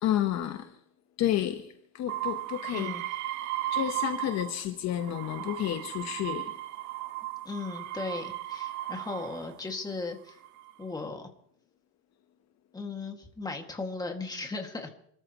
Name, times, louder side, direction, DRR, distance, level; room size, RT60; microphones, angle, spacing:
voice 1, 0.0-0.8 1.2-2.9 3.7-6.6, left 11 dB, 45° left, 1.1 m, -30 dB
sound 1, 2.1-4.6 5.0-9.5 10.3-10.8, right 15 dB, 50° right, 0.6 m, -36 dB
voice 2, 2.7-3.0 7.5-10.4 10.8-11.3 12.7-14.9, left 3 dB, 10° left, 2.0 m, -36 dB
28.5 x 13.5 x 3.0 m
cardioid pair, 155°, 39 cm